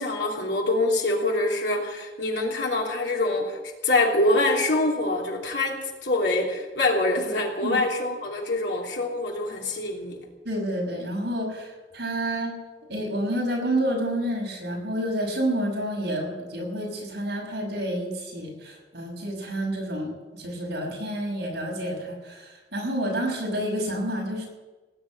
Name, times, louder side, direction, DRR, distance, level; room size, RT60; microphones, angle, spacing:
voice 1, 0.0-10.2, left 2 dB, 85° left, -1 dB, 3.1 m, -25 dB
voice 2, 10.4-12.5 12.9-24.5, right 1 dB, 75° right, 0 dB, 6.1 m, -29 dB
18.5 x 8.3 x 8.7 m, 1.2 s
head